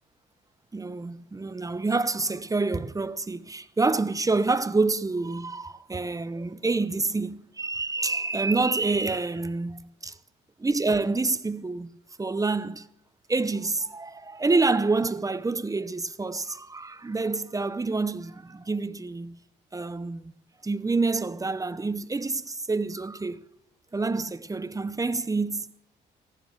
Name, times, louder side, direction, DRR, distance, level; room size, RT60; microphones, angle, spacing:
voice 1, 0.7-10.2 10.6-11.9 12.2-12.9 13.3-19.4 19.7-20.3 20.6-23.4 23.9-25.7, right 3 dB, 15° right, 0.8 m, -27 dB
15.0 x 11.5 x 7.8 m
cardioid pair, 90°, 20 cm